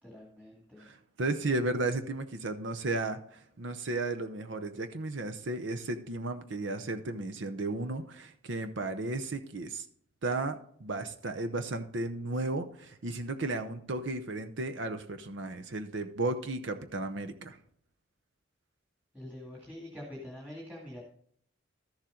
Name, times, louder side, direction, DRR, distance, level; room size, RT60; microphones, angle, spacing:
voice 1, 0.0-0.9 19.1-21.0, left 1 dB, 10° right, -4 dB, 2.2 m, -45 dB
voice 2, 0.8-9.8 10.2-17.6, right 2 dB, 65° right, 8 dB, 0.8 m, -34 dB
13.0 x 7.2 x 3.8 m, 0.64 s
head